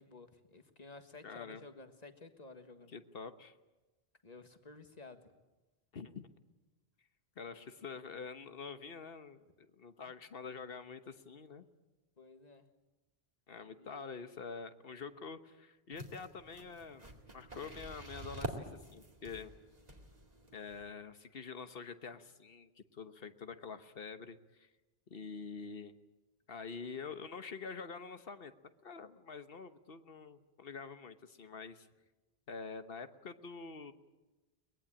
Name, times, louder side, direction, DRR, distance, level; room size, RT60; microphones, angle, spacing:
voice 1, 0.0-2.9 4.2-5.3 12.2-12.7 13.8-14.1, left 3 dB, 40° left, 8 dB, 1.7 m, -53 dB
voice 2, 1.2-1.6 2.9-3.5 5.9-6.3 7.4-11.7 13.5-17.1 17.3-19.5 20.5-24.7 25.1-25.9 26.5-28.5 28.8-31.9 32.5-33.9, left 5 dB, 65° left, 10 dB, 1.3 m, -46 dB
sound 1, 15.9-20.9, right 2 dB, 40° right, 2.3 m, -47 dB
23.0 x 20.5 x 8.7 m, 1.1 s
omnidirectional pair, 1.1 m